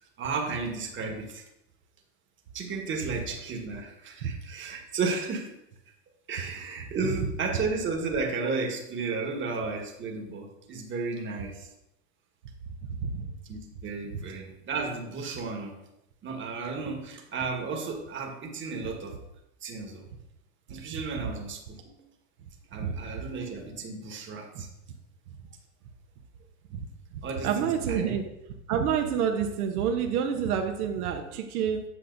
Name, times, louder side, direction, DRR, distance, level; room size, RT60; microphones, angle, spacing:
voice 1, 0.2-1.4 2.5-5.5 6.3-11.7 13.4-15.8 16.2-19.2 19.6-20.1 20.7-22.0 22.7-24.7 27.2-28.2, right 4 dB, 25° right, 2 dB, 1.3 m, -33 dB
voice 2, 13.0-13.3 22.7-22.9 26.7-26.8 27.4-28.2 28.7-31.8, right 7 dB, 70° right, 3 dB, 1.0 m, -28 dB
8.2 x 5.6 x 2.6 m, 0.86 s
hypercardioid pair, 105°, 46 cm